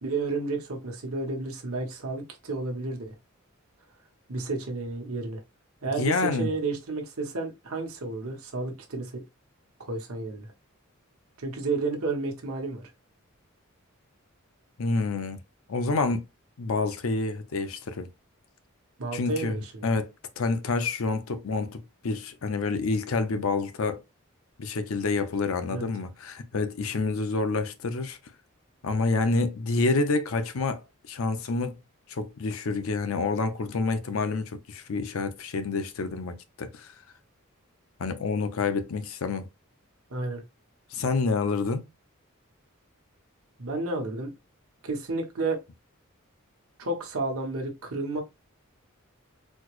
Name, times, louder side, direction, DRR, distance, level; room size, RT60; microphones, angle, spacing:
voice 1, 0.0-3.1 4.3-5.4 5.8-9.2 9.8-10.5 11.4-12.9 19.0-19.9 25.7-25.9 40.1-40.4 43.6-44.3 44.8-45.6 46.8-48.2, right 3 dB, 85° right, 1.0 m, -31 dB
voice 2, 6.0-6.5 14.8-15.4 15.7-16.2 16.6-18.1 19.1-24.0 24.6-28.2 28.8-30.8 31.1-31.8 32.1-36.9 38.0-39.5 40.9-41.8, left 3 dB, 70° left, 0.5 m, -28 dB
4.2 x 2.0 x 2.9 m
head